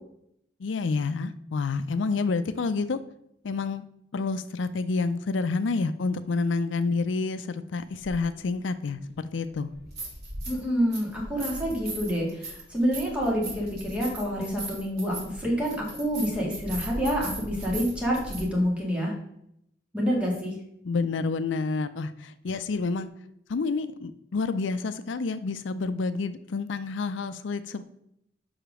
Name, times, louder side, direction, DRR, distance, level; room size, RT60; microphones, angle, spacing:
voice 1, 0.6-3.0 3.4-3.8 4.1-9.7 20.8-23.1 23.5-27.8, left 4 dB, 80° left, 12 dB, 0.5 m, -29 dB
sound 1, 8.0-8.1 9.7-10.6 10.9-18.4, right 2 dB, 60° right, 3.4 m, -38 dB
voice 2, 10.5-19.1 19.9-20.5, equal, 5° right, -3 dB, 2.1 m, -27 dB
5.7 x 5.0 x 6.1 m, 0.75 s
head